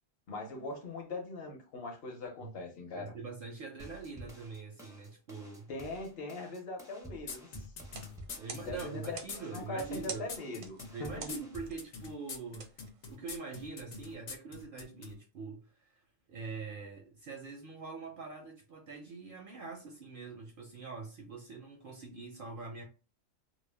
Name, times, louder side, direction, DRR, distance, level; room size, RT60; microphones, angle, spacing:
voice 1, 0.3-3.1 5.7-7.7 8.6-11.3, left 2 dB, 55° left, 0.8 m, -41 dB
voice 2, 2.9-5.7 8.4-10.3 10.9-12.7 13.1-16.0 16.3-22.9, right 4 dB, 60° right, 0.5 m, -44 dB
sound 1, 3.8-11.8, right 1 dB, 5° right, 0.4 m, -51 dB
sound 2, 7.3-15.1, left 4 dB, 85° left, 0.3 m, -44 dB
sound 3, 7.8-13.6, right 6 dB, 85° right, 1.0 m, -50 dB
2.4 x 2.0 x 3.2 m
omnidirectional pair, 1.3 m